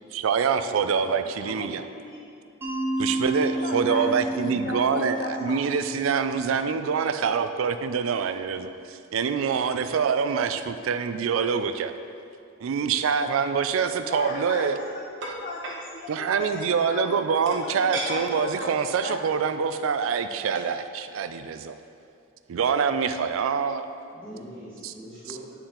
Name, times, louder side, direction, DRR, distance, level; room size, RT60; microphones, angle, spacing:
voice 1, 0.1-1.8 3.0-11.9 12.6-14.8 16.1-21.8 22.5-23.9 24.8-24.9, right 6 dB, 80° right, 10 dB, 0.4 m, -25 dB
voice 2, 0.6-1.9 24.1-25.5, equal, 10° left, -14 dB, 1.6 m, -43 dB
voice 3, 1.4-2.3 3.4-4.2 4.5-5.6 14.0-19.2, left 3 dB, 40° left, 1 dB, 0.4 m, -37 dB
Mallet percussion, 2.6-7.4, right 1 dB, 10° right, 1.5 m, -31 dB
sound 1, 14.3-14.4 15.2-15.8 17.5-18.1 18.6-18.7 19.1-19.3 20.3-20.4 20.5-20.7, right 2 dB, 65° right, 1.1 m, -35 dB
8.6 x 4.4 x 3.8 m, 2.4 s
head